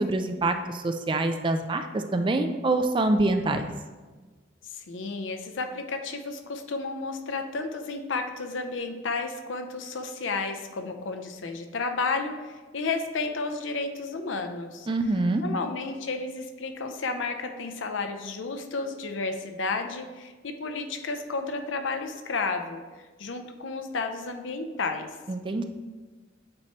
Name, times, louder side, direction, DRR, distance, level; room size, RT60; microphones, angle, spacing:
voice 1, 0.0-3.7 14.9-15.4 25.3-25.6, right 2 dB, 25° right, 7 dB, 0.4 m, -25 dB
voice 2, 4.7-14.9 15.4-25.1, left 3 dB, 80° left, 6 dB, 0.6 m, -32 dB
8.6 x 3.0 x 4.5 m, 1.3 s
head